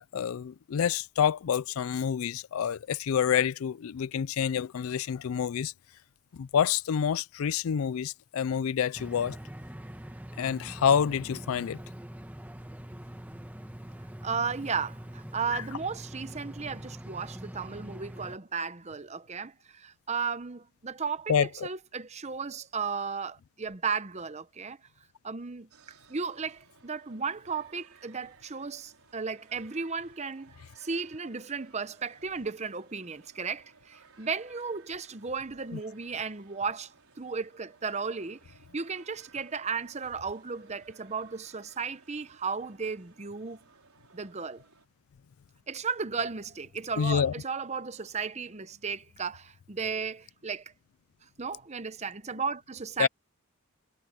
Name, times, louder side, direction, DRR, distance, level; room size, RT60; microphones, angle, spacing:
voice 1, 0.0-5.7 6.3-9.4 10.4-11.8 15.5-15.6 21.3-21.7 47.0-47.3 53.0-53.1, left 8 dB, 70° left, 0.4 m, -28 dB
sound 1, 8.9-18.4, equal, 5° right, 1.2 m, -43 dB
voice 2, 14.2-24.8 25.2-25.7 26.1-36.9 37.2-38.4 38.7-43.6 44.1-44.6 45.7-50.6 51.4-53.1, right 5 dB, 30° right, 0.8 m, -35 dB
sound 2, 25.7-44.9, right 5 dB, 80° right, 4.5 m, -60 dB
head